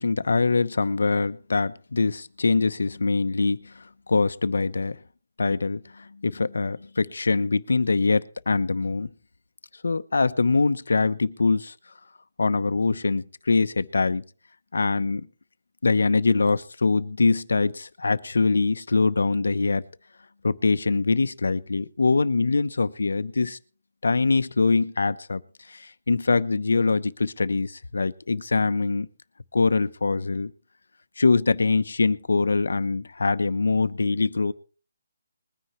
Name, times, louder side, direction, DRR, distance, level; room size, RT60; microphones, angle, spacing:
voice 1, 0.0-3.7 4.1-5.0 5.4-9.1 9.8-11.7 12.4-14.2 14.7-15.2 15.8-19.8 20.4-23.6 24.0-25.4 25.7-29.1 29.5-30.5 31.2-34.5, left 4 dB, 70° left, 0.8 m, -23 dB
21.5 x 10.0 x 3.2 m
hypercardioid pair, 180°, 0 cm